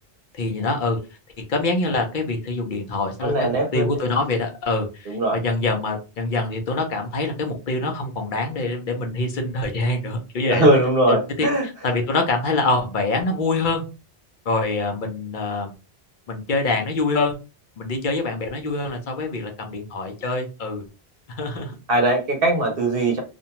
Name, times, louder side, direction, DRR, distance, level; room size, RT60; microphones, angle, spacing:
voice 1, 0.3-1.0 1.4-10.7 11.1-13.8 14.5-15.7 16.3-17.4 17.8-20.8 21.3-21.8, left 3 dB, 55° left, 4 dB, 0.7 m, -25 dB
voice 2, 3.2-4.0 5.1-5.4 10.4-11.7 21.9-23.2, right 1 dB, 65° right, 2 dB, 0.8 m, -20 dB
2.5 x 2.2 x 2.8 m, 0.30 s
omnidirectional pair, 1.1 m